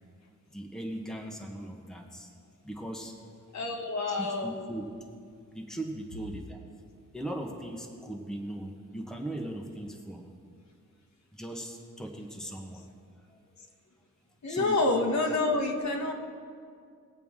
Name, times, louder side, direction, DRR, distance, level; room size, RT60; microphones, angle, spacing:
voice 1, 0.5-2.3 2.6-3.4 4.1-4.9 5.5-6.6 7.1-10.3 11.3-12.9 13.2-13.4 14.5-14.8, right 1 dB, ahead, 1 dB, 1.2 m, -39 dB
voice 2, 3.5-4.7 14.4-16.1, left 2 dB, 60° left, 2 dB, 1.5 m, -28 dB
20.5 x 8.1 x 3.7 m, 2.2 s
wide cardioid pair, 135°, 32 cm